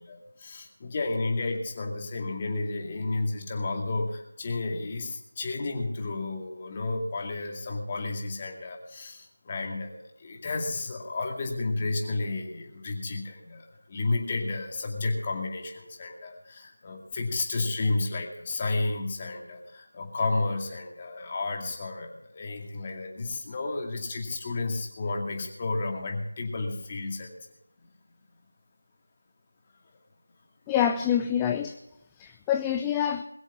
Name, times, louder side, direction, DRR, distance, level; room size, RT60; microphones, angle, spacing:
voice 1, 0.0-27.3, left 3 dB, 25° left, 2 dB, 2.4 m, -32 dB
voice 2, 30.7-31.8 32.2-33.2, left 9 dB, 10° left, 6 dB, 0.4 m, -26 dB
21.5 x 7.3 x 7.3 m, 0.83 s
figure-of-eight pair, 170°, 0 cm